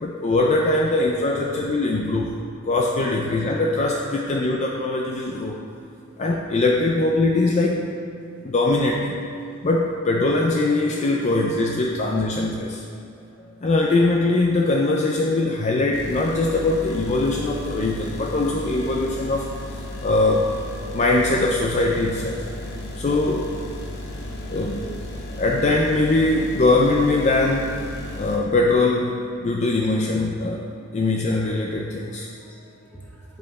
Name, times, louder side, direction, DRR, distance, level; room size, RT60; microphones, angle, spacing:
voice 1, 0.0-2.4 2.7-5.6 6.2-7.9 8.4-9.2 9.6-12.8 13.6-20.5 20.9-22.4 23.0-23.5 24.5-25.0 25.4-27.8 28.2-32.3, left 2 dB, 35° left, -1 dB, 0.4 m, -22 dB
voice 2, 0.9-1.5 1.9-2.4 2.7-2.8 9.5-9.7 11.4-11.5 30.3-31.2 31.5-31.6 32.2-33.4, right 1 dB, 5° left, -4 dB, 1.1 m, -50 dB
sound 1, 15.9-28.4, left 1 dB, 55° left, 1.0 m, -34 dB
7.8 x 5.3 x 4.1 m, 2.5 s
head